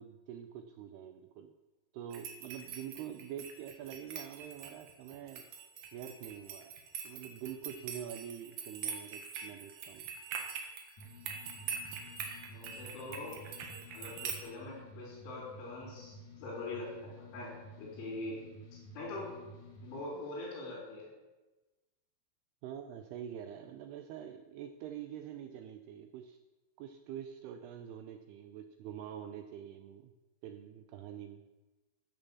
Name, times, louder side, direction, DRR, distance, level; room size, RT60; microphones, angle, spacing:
voice 1, 0.0-1.5 1.9-5.5 5.9-6.7 7.0-10.1 22.6-26.4 26.8-30.1 30.4-31.4, right 9 dB, 85° right, 8 dB, 2.3 m, -45 dB
sound 1, 2.1-14.4, right 6 dB, 60° right, 2.9 m, -44 dB
sound 2, 11.0-20.1, equal, 50° left, 2.6 m, -52 dB
voice 2, 12.5-13.4 13.9-18.4 18.9-19.3 19.8-21.1, left 2 dB, 85° left, -8 dB, 6.6 m, -43 dB
13.5 x 8.9 x 7.2 m, 1.1 s
omnidirectional pair, 5.4 m